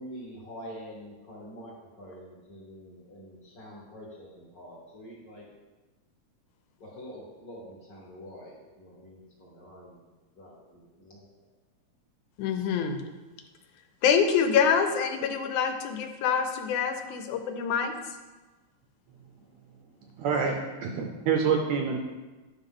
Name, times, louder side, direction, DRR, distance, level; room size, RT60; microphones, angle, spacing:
voice 1, 0.0-5.5 6.8-10.0 10.3-11.2, equal, 40° left, -4 dB, 1.5 m, -46 dB
voice 2, 12.4-13.0 14.0-17.9, left 7 dB, 80° left, 7 dB, 2.1 m, -26 dB
voice 3, 20.2-22.0, right 6 dB, 75° right, 3 dB, 1.7 m, -27 dB
9.9 x 5.5 x 3.7 m, 1.2 s
omnidirectional pair, 3.5 m